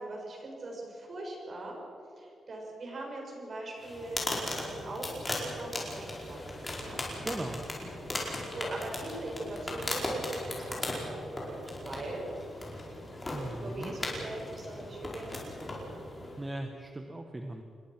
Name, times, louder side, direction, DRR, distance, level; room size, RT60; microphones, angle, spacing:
voice 1, 0.0-1.8 2.2-7.0 8.5-12.2 13.3-16.1, right 2 dB, 35° right, 0 dB, 6.4 m, -41 dB
sound 1, 3.8-16.5, left 1 dB, 15° left, 4.8 m, -38 dB
voice 2, 7.2-7.6 13.3-14.0 16.4-17.6, right 1 dB, 15° right, 4 dB, 1.3 m, -38 dB
27.5 x 21.5 x 6.1 m, 2.6 s
wide cardioid pair, 165°, 0 cm